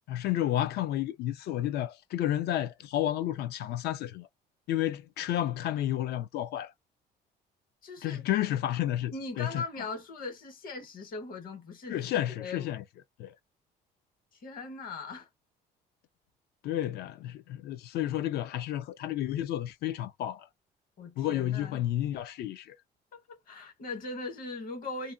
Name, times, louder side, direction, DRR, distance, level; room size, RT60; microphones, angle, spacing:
voice 1, 0.1-4.3 4.7-6.7 8.0-9.6 11.9-12.8 13.2-13.3 16.6-20.5 21.2-22.8, left 12 dB, 75° left, 0.5 m, -31 dB
voice 2, 7.8-8.2 9.1-12.0 12.4-12.7 14.3-15.3 21.0-21.8 23.1-25.1, left 3 dB, 55° left, 1.3 m, -40 dB
2.5 x 2.2 x 2.5 m
cardioid pair, 110°, 17 cm